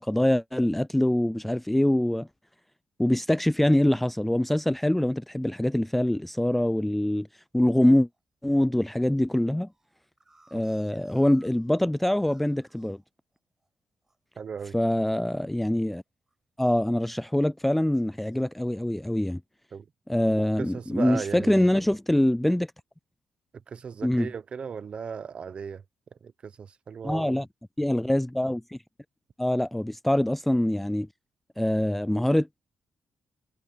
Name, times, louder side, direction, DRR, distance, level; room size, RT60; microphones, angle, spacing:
voice 1, 0.0-2.3 3.0-7.3 7.5-8.1 8.4-9.7 10.5-13.0 14.7-16.0 16.6-19.4 20.1-22.7 24.0-24.3 27.0-27.5 27.8-28.6 29.4-31.1 31.6-32.6, left 1 dB, 5° left, 0.3 m, -24 dB
sound 1, 4.4-4.5 5.0-5.1 5.4-5.7 6.1-6.8 7.3-7.7 8.1-8.2 8.5-8.6 8.9-13.7 14.0-16.6 16.9-17.4 17.9-19.2, right 2 dB, 15° right, 6.7 m, -66 dB
voice 2, 14.4-14.7 19.7-19.9 20.6-21.8 23.7-25.8 26.1-27.4, right 6 dB, 45° right, 1.0 m, -36 dB
cardioid pair, 115°, 3 cm